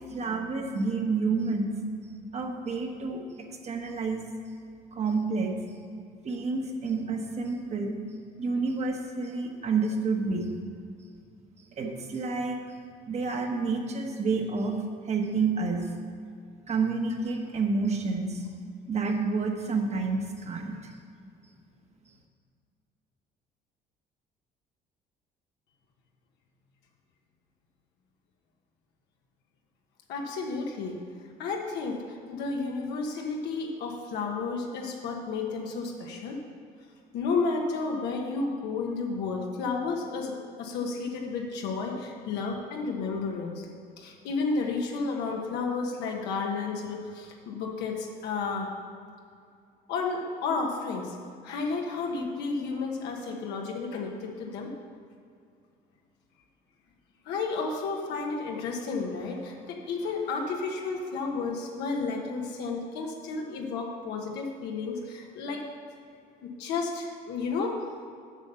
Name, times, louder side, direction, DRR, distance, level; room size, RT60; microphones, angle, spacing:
voice 1, 0.1-1.8 2.3-4.2 4.9-5.5 6.2-8.0 8.4-10.5 11.8-12.6 13.1-14.8 15.0-15.9 16.7-18.5 18.9-20.9, right 4 dB, 40° right, 3 dB, 1.2 m, -29 dB
voice 2, 30.1-31.0 31.4-36.4 37.1-43.7 44.0-48.7 49.9-51.2 51.4-54.7 57.2-65.6 66.4-67.8, left 4 dB, 85° left, 0 dB, 1.2 m, -32 dB
8.1 x 5.5 x 6.8 m, 2.3 s
cardioid pair, 110°, 17 cm